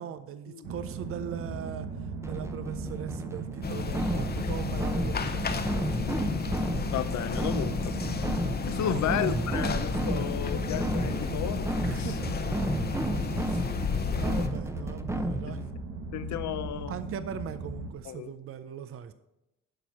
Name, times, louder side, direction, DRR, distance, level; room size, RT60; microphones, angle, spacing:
voice 1, 0.0-1.9 2.2-5.8 8.8-9.0 11.8-12.5 13.5-13.7 14.1-15.6 16.9-19.1, right 8 dB, 45° right, 12 dB, 0.5 m, -40 dB
Secret Temple Storm, 0.6-17.9, right 3 dB, 90° right, 1.3 m, -38 dB
sound 1, 2.2-15.7, right 1 dB, 10° right, 0.7 m, -33 dB
sound 2, 3.6-14.5, left 5 dB, 30° left, 0.8 m, -32 dB
voice 2, 6.9-8.0 8.6-11.7 12.0-12.2 13.5-13.7 15.5-15.6 16.1-16.9 18.0-18.3, left 10 dB, 70° left, 13 dB, 0.7 m, -33 dB
11.5 x 4.7 x 5.7 m, 0.95 s
cardioid pair, 90°, 30 cm